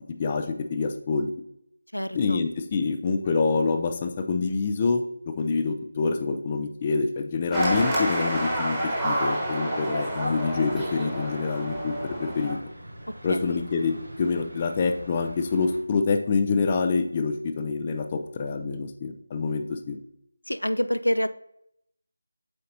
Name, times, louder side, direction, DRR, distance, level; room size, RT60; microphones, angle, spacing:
voice 1, 0.2-1.3 2.1-8.8 9.0-11.9 12.2-12.6 13.2-20.0, left 4 dB, 25° left, 7 dB, 0.5 m, -26 dB
voice 2, 1.9-2.4 13.1-13.6 20.5-21.3, equal, 80° left, 13 dB, 0.4 m, -27 dB
sound 1, 7.5-12.5, right 1 dB, 5° right, 1.2 m, -28 dB
sound 2, 8.3-15.8, right 1 dB, 60° right, 2.3 m, -44 dB
7.7 x 5.3 x 2.8 m, 0.76 s
figure-of-eight pair, 160°, 0 cm